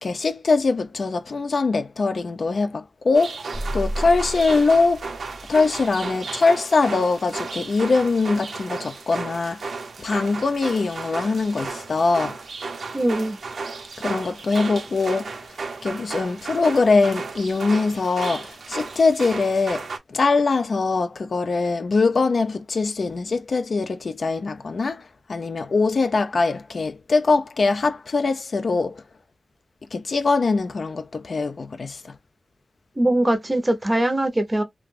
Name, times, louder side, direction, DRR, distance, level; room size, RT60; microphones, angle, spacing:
voice 1, 0.0-3.4 3.7-5.1 5.5-9.7 10.0-12.4 14.0-15.4 15.8-29.0 29.9-32.2, left 3 dB, 60° left, 0.3 m, -22 dB
sound 1, 3.1-20.0, right 4 dB, 80° right, 0.5 m, -34 dB
sound 2, 3.5-6.0, equal, 5° left, 0.8 m, -32 dB
voice 2, 12.9-13.4 33.0-34.6, right 1 dB, 20° right, 0.6 m, -21 dB
2.4 x 2.1 x 3.1 m
wide cardioid pair, 130°, 0 cm